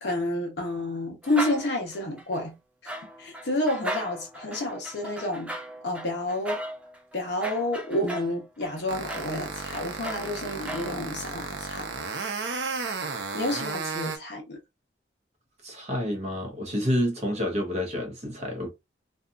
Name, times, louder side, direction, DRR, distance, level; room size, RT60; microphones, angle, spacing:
voice 1, 0.0-2.6 2.8-2.9 3.2-5.5 5.8-6.6 7.1-11.9 13.3-14.6, left 1 dB, 65° left, 0.9 m, -30 dB
sound 1, 1.2-2.4 2.9-11.0, right 1 dB, 5° right, 0.4 m, -37 dB
sound 2, 8.9-14.2, right 4 dB, 70° right, 0.6 m, -33 dB
voice 2, 15.6-18.7, equal, 35° right, 0.8 m, -28 dB
2.7 x 2.4 x 2.4 m
head